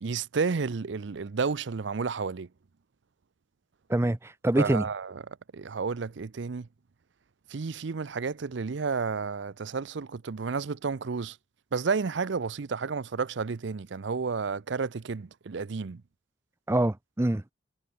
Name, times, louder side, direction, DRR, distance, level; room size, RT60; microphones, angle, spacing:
voice 1, 0.0-2.5 4.6-5.2 5.5-6.7 7.5-11.4 11.7-16.0, right 5 dB, 65° right, 0.5 m, -31 dB
voice 2, 3.9-4.8 16.7-17.5, right 1 dB, 15° right, 0.4 m, -25 dB
head